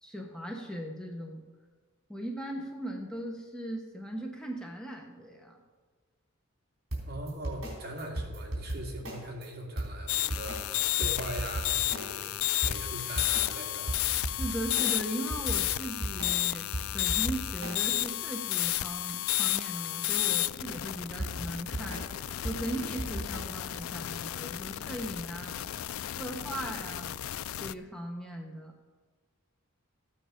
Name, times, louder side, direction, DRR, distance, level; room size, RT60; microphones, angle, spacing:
voice 1, 0.0-1.4 2.1-5.6 14.2-16.6 16.9-22.0 22.4-25.7 26.2-27.2 27.6-28.7, right 1 dB, 5° left, 0 dB, 1.1 m, -38 dB
sound 1, 6.9-9.5 9.8-12.3 12.6-18.3 21.2-23.4, right 1 dB, 75° right, 3.7 m, -36 dB
voice 2, 7.1-12.3 12.6-13.9, right 1 dB, 50° right, -1 dB, 2.4 m, -41 dB
sound 2, 10.1-27.7, left 15 dB, 85° left, 0.4 m, -32 dB
14.5 x 9.0 x 5.2 m, 1.4 s
head